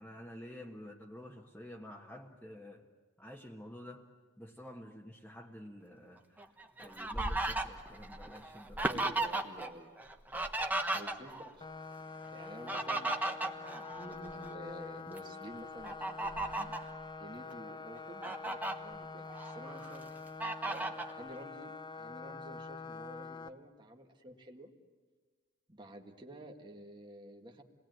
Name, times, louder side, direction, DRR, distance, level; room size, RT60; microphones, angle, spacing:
voice 1, 0.0-2.8 3.2-4.1 4.4-6.5 6.8-9.0 10.9-11.3, left 1 dB, 10° left, -3 dB, 1.5 m, -50 dB
Fowl, 6.4-9.7 10.0-11.5 12.4-14.5 15.0-15.2 15.8-16.9 17.5-17.6 18.0-18.7 19.3-20.0 20.4-21.1, right 2 dB, 10° right, 1.3 m, -36 dB
voice 2, 8.8-9.9 10.3-10.4 11.0-11.7 12.3-16.8 17.2-20.1 20.7-24.7 25.7-27.6, equal, 25° right, 2 dB, 1.8 m, -50 dB
sound 1, 11.6-23.5, left 4 dB, 25° left, 0.8 m, -46 dB
28.5 x 20.0 x 9.3 m, 1.4 s
head